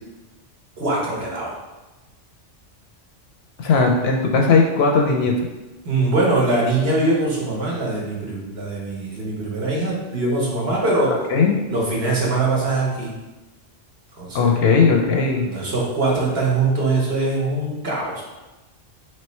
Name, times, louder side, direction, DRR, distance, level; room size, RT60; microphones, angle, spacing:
voice 1, 0.8-1.6 5.8-11.1 11.7-13.1 14.1-14.5 15.4-18.2, right 2 dB, 55° right, -3 dB, 1.2 m, -22 dB
voice 2, 3.6-5.5 11.1-11.6 14.3-15.5, left 4 dB, 65° left, 1 dB, 0.8 m, -18 dB
3.1 x 3.1 x 4.3 m, 1.1 s
omnidirectional pair, 1.2 m